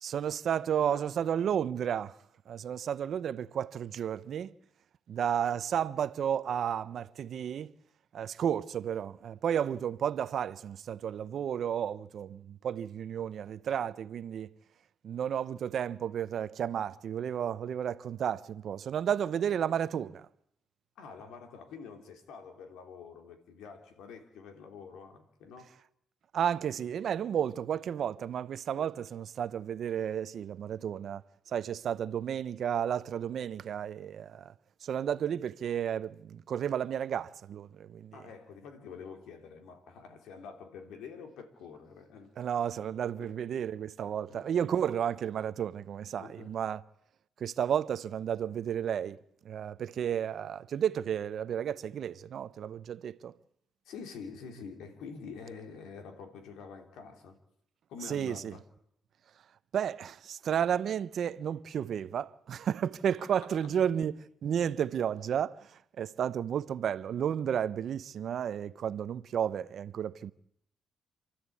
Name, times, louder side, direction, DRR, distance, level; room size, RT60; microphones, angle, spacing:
voice 1, 0.0-2.2 2.5-4.5 5.1-7.7 8.1-14.5 15.0-20.3 26.3-34.5 34.8-38.2 42.4-46.8 47.4-49.2 49.4-53.3 58.1-58.6 59.7-70.3, right 9 dB, 60° right, 0.8 m, -32 dB
voice 2, 21.0-25.7 28.7-28.9 38.1-42.3 43.2-43.4 44.3-44.5 46.2-46.6 53.8-57.4 57.9-58.6, left 5 dB, 85° left, 3.1 m, -47 dB
28.0 x 13.0 x 8.5 m
cardioid pair, 90°, 0 cm